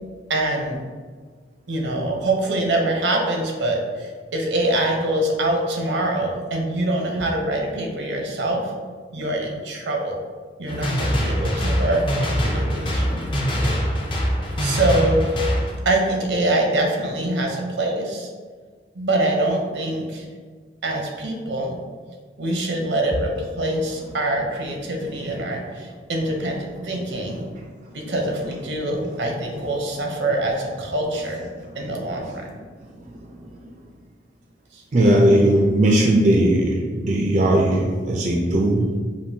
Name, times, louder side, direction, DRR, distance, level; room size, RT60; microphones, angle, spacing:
voice 1, 0.3-0.8 1.7-8.7 9.1-10.2 10.6-13.8 14.6-15.2 15.8-18.3 19.0-20.2 20.8-21.8 22.4-27.5 27.9-31.5 31.8-32.5 34.7-34.8, right 1 dB, 80° right, 1 dB, 0.7 m, -24 dB
sound 1, 10.7-15.7, equal, 25° left, 0.5 m, -23 dB
voice 2, 32.8-33.7 34.9-38.9, right 1 dB, 40° right, -1 dB, 0.4 m, -19 dB
5.2 x 2.6 x 2.7 m, 1.5 s
head